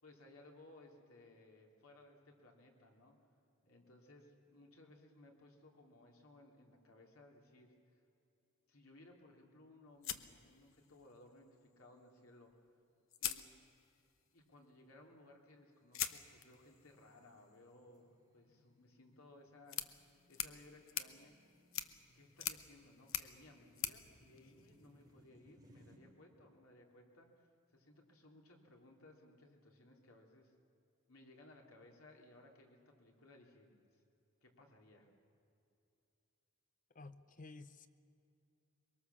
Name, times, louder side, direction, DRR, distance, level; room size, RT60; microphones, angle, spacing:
voice 1, 0.0-3.2 3.6-8.0 8.7-12.5 13.2-13.5 14.3-21.4 22.1-30.5 31.1-34.0 34.4-35.1, left 2 dB, 90° left, 1 dB, 3.2 m, -62 dB
sound 1, 9.9-10.0 10.4-10.5 11.2-11.7 12.2-12.5 13.1-26.0, equal, 20° right, 4.0 m, -70 dB
sound 2, 10.0-11.2 12.5-12.6 13.1-14.1 15.9-25.1, left 11 dB, 70° left, 0.9 m, -46 dB
voice 2, 36.9-37.9, left 3 dB, 40° left, 12 dB, 0.7 m, -53 dB
23.5 x 23.0 x 7.1 m, 2.7 s
head